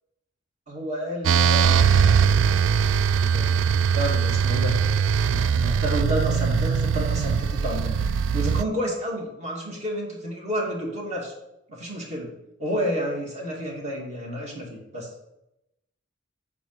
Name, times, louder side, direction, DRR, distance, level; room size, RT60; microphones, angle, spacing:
voice 1, 0.7-2.7 3.1-4.8 5.3-8.0 8.3-11.3 11.7-12.3 12.6-15.1, equal, 35° right, -2 dB, 2.4 m, -30 dB
sound 1, 1.2-8.6, right 6 dB, 85° right, 0.3 m, -21 dB
9.2 x 4.7 x 6.5 m, 0.87 s
head